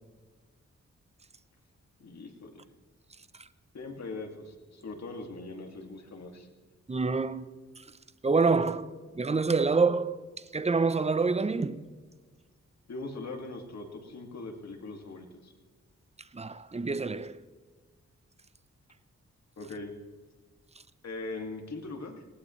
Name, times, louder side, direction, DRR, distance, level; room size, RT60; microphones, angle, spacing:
voice 1, 2.0-2.6 3.7-6.5 12.9-15.5 19.6-19.9 21.0-22.3, left 3 dB, 65° left, 2.4 m, -41 dB
voice 2, 6.9-7.5 8.2-10.2 10.5-11.8 16.3-17.4, right 4 dB, 20° right, 0.7 m, -27 dB
19.5 x 18.5 x 3.2 m
wide cardioid pair, 90°, 29 cm